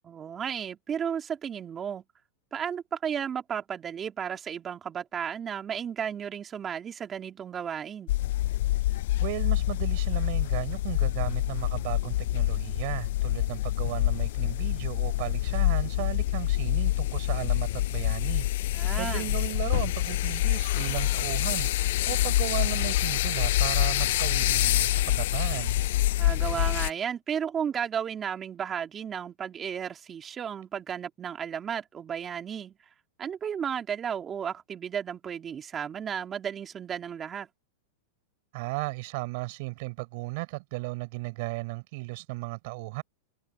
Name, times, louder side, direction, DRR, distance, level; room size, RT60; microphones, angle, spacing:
voice 1, 0.0-2.0 2.5-8.1 18.7-19.3 26.2-32.8 33.2-37.5, right 8 dB, 25° right, 3.3 m, -33 dB
sound 1, 8.1-26.9, left 15 dB, 70° left, 0.4 m, -26 dB
voice 2, 9.2-18.5 19.0-21.7 22.1-25.8 38.5-43.0, right 25 dB, 55° right, 6.4 m, -35 dB
hypercardioid pair, 130°, 0 cm